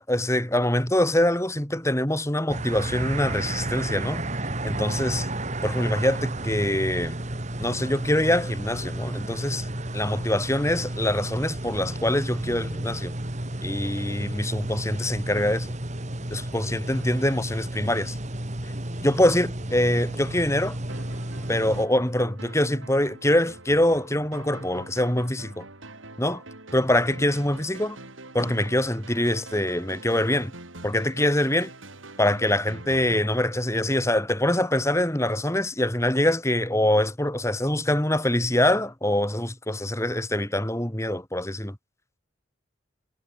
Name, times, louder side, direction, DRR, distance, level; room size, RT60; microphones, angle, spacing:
voice 1, 0.0-4.2 4.6-5.3 5.6-7.2 7.6-9.7 9.9-13.1 13.6-15.7 16.3-18.2 19.0-20.8 21.5-25.6 26.2-26.4 26.7-28.0 28.3-30.5 30.8-31.7 32.2-41.8, left 1 dB, 15° left, 3.0 m, -24 dB
sound 1, 2.5-21.9, right 1 dB, 35° right, 2.2 m, -32 dB
sound 2, 20.9-34.4, right 2 dB, 80° right, 5.6 m, -44 dB
head